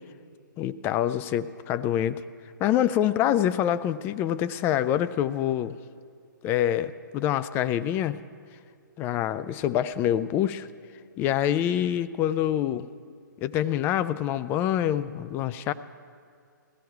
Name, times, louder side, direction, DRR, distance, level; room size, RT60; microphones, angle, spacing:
voice 1, 0.6-2.2 2.6-5.8 6.4-8.2 9.0-10.7 11.2-12.9 13.4-15.7, left 11 dB, 20° left, 14 dB, 0.4 m, -26 dB
16.0 x 14.0 x 4.6 m, 2.3 s
figure-of-eight pair, 130°, 11 cm